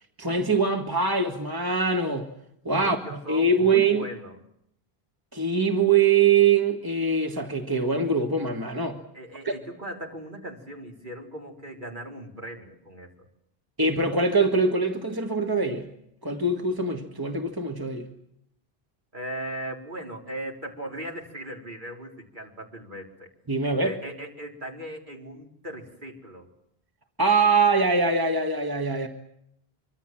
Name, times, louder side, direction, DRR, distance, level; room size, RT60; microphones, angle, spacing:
voice 1, 0.2-2.3 2.7-4.1 5.3-9.0 9.4-9.5 13.8-15.9 16.2-18.1 23.5-24.0 27.2-29.1, right 4 dB, 20° right, 4 dB, 1.7 m, -23 dB
voice 2, 2.7-4.4 9.1-13.1 19.1-23.3 23.8-26.5, right 1 dB, 50° right, 1 dB, 4.2 m, -38 dB
25.5 x 24.5 x 7.6 m, 0.76 s
omnidirectional pair, 1.0 m